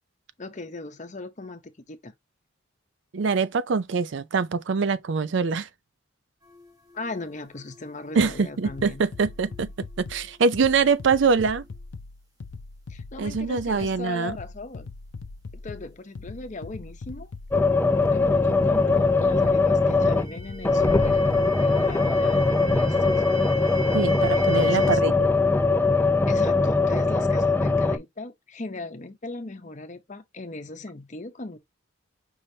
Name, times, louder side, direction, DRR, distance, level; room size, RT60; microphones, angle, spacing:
voice 1, 0.4-2.1 6.9-9.0 12.9-14.9 15.5-17.3 17.9-21.3 21.6-23.1 24.4-25.0 26.3-31.6, left 2 dB, 35° left, 0.7 m, -38 dB
voice 2, 3.1-5.7 8.1-9.7 10.0-11.6 13.2-14.3 23.9-25.1, right 5 dB, 65° right, 0.5 m, -24 dB
sound 1, 6.4-11.8 18.0-18.1 18.5-25.0, right 1 dB, 20° right, 1.4 m, -42 dB
sound 2, 8.2-23.2, left 3 dB, 70° left, 0.5 m, -41 dB
sound 3, 17.5-20.4 20.6-28.0, left 3 dB, 10° left, 0.3 m, -21 dB
5.5 x 3.3 x 2.7 m
head